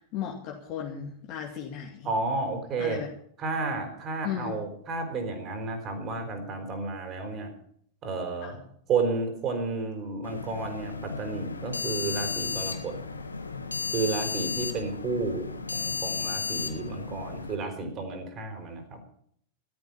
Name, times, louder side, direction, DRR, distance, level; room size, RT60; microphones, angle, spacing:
voice 1, 0.1-2.1 2.8-3.1 4.2-4.5 8.4-8.5, left 9 dB, 40° left, -1 dB, 2.6 m, -35 dB
voice 2, 2.0-3.0 3.4-7.5 8.0-8.5 8.9-12.9 13.9-19.0, right 3 dB, 30° right, 5 dB, 4.6 m, -32 dB
sound 1, 10.2-17.6, left 5 dB, 80° left, 1.5 m, -34 dB
14.0 x 13.0 x 5.6 m, 0.65 s
figure-of-eight pair, 90°, 0 cm